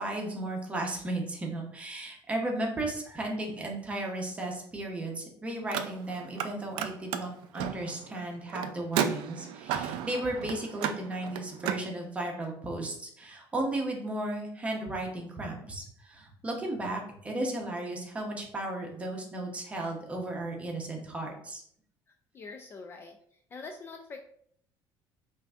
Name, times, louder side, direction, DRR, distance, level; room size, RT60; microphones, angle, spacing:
voice 1, 0.0-21.6, right 1 dB, 15° right, 0 dB, 0.8 m, -35 dB
Car, 5.6-6.5 6.7-11.8, right 9 dB, 80° right, 0.4 m, -34 dB
voice 2, 22.3-23.2 23.5-24.2, left 4 dB, 30° left, 3 dB, 0.3 m, -43 dB
5.6 x 2.6 x 2.4 m, 0.65 s
cardioid pair, 145°, 8 cm